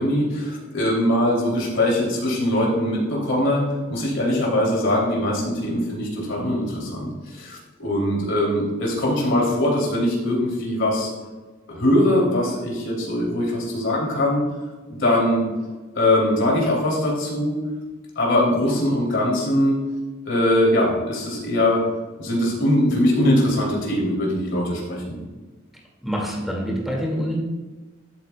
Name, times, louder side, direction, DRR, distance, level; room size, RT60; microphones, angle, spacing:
voice 1, 0.0-3.6 3.9-11.1 11.7-14.4 14.9-15.5 15.9-17.6 18.2-19.8 20.2-21.8 22.2-25.2, left 1 dB, 65° left, -3 dB, 2.8 m, -21 dB
voice 2, 26.0-27.4, equal, ahead, -3 dB, 2.0 m, -26 dB
12.5 x 8.1 x 2.2 m, 1.3 s
head